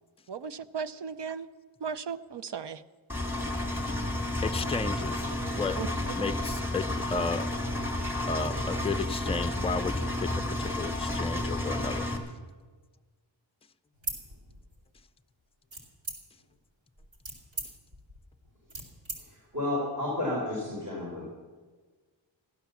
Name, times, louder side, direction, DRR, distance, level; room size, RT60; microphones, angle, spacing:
voice 1, 0.3-1.5 1.8-2.8 5.8-5.9, right 6 dB, 65° right, 13 dB, 0.7 m, -36 dB
Engine, 3.1-12.2, left 1 dB, 5° right, 2.1 m, -31 dB
voice 2, 4.4-5.3 5.6-5.8 6.2-7.5 8.3-12.1, left 4 dB, 15° left, 9 dB, 0.4 m, -33 dB
sound 1, 13.9-15.0 15.7-16.5 17.0-19.2, right 2 dB, 85° right, 2.8 m, -39 dB
voice 3, 19.2-21.3, left 1 dB, 40° right, -5 dB, 4.7 m, -32 dB
15.0 x 11.5 x 7.0 m, 1.4 s
wide cardioid pair, 110°, 46 cm